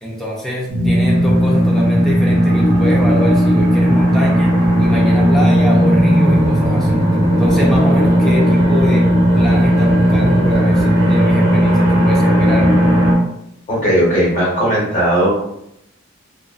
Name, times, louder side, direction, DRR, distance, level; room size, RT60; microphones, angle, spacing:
voice 1, 0.0-7.0 7.4-9.1 9.3-12.7, left 1 dB, ahead, -4 dB, 0.5 m, -24 dB
sound 1, 0.7-13.1, equal, 70° right, 0.7 m, -14 dB
voice 2, 13.7-15.3, right 1 dB, 40° left, -5 dB, 1.1 m, -16 dB
2.4 x 2.3 x 2.4 m, 0.79 s
head